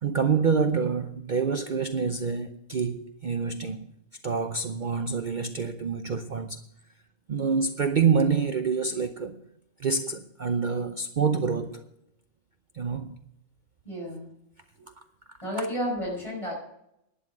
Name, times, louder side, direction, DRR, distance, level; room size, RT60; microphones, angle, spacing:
voice 1, 0.0-3.9 4.2-6.6 7.3-9.4 9.8-11.8 12.7-13.2 15.6-15.7, right 5 dB, 45° right, 0.7 m, -27 dB
voice 2, 13.8-14.3 14.8-14.9 15.4-16.5, equal, 25° left, 5.8 m, -32 dB
11.5 x 10.0 x 6.0 m
omnidirectional pair, 1.3 m